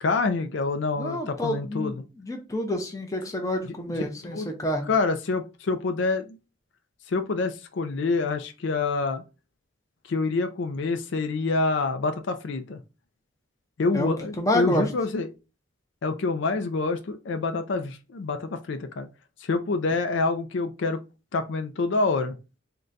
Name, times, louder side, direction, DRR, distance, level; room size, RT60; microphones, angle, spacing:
voice 1, 0.0-2.0 3.7-3.8 4.2-4.5 4.9-6.4 7.1-9.2 10.1-12.8 13.8-15.3 16.0-19.1 19.4-21.0 21.3-22.4, left 3 dB, 65° left, 0.4 m, -27 dB
voice 2, 1.0-4.9 13.9-14.9, left 1 dB, 15° left, 0.6 m, -29 dB
3.8 x 2.2 x 3.8 m
head